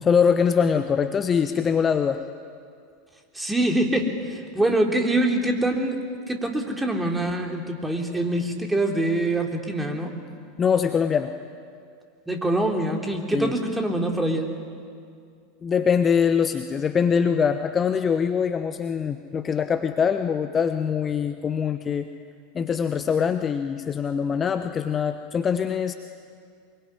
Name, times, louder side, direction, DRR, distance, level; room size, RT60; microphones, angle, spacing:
voice 1, 0.0-2.2 10.6-11.3 13.3-13.5 15.6-22.1 22.5-25.9, left 7 dB, 25° left, 9 dB, 1.1 m, -23 dB
voice 2, 3.3-6.0 6.3-10.1 12.3-14.5, right 1 dB, 10° right, 2 dB, 3.6 m, -24 dB
24.5 x 23.0 x 9.9 m, 2.3 s
figure-of-eight pair, 85°, 0 cm